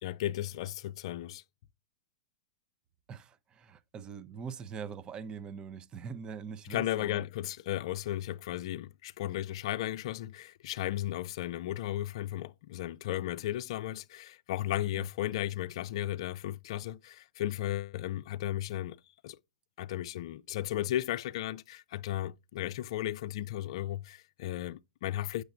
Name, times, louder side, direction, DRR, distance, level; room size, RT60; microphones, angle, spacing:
voice 1, 0.0-1.4 6.7-19.0 19.2-19.4 19.8-25.4, left 13 dB, 60° left, 0.4 m, -35 dB
voice 2, 3.1-7.2 14.9-15.1, right 6 dB, 25° right, 0.7 m, -43 dB
8.8 x 6.4 x 2.5 m
hypercardioid pair, 110°, 3 cm